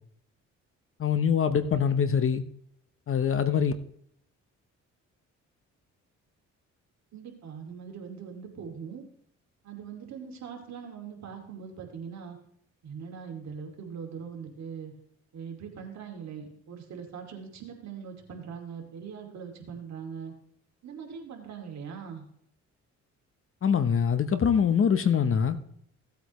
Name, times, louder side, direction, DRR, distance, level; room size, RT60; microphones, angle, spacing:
voice 1, 1.0-2.4 3.1-3.7 23.6-25.6, left 7 dB, 45° left, 0.9 m, -24 dB
voice 2, 7.1-9.1 9.6-12.4 12.8-14.9 15.3-20.3 20.8-22.3, right 6 dB, 65° right, 2.5 m, -41 dB
16.0 x 8.2 x 3.1 m
cardioid pair, 90°, 30 cm